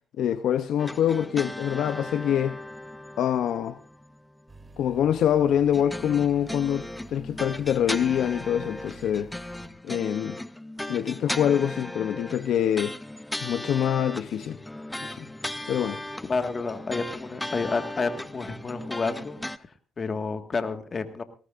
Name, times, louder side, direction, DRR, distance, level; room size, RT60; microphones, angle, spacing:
voice 1, 0.2-2.6 3.2-3.8 4.8-9.3 9.8-10.4 10.9-12.9 13.4-14.6 15.0-15.3 15.7-16.0, left 9 dB, 75° left, 0.7 m, -25 dB
sound 1, 0.8-4.5 5.7-19.6, left 1 dB, 10° left, 0.6 m, -37 dB
sound 2, 4.5-9.7, right 2 dB, 20° right, 1.9 m, -50 dB
voice 2, 16.3-19.4 20.0-21.2, left 4 dB, 35° left, 1.7 m, -30 dB
19.5 x 18.0 x 2.6 m
cardioid pair, 90°, 0 cm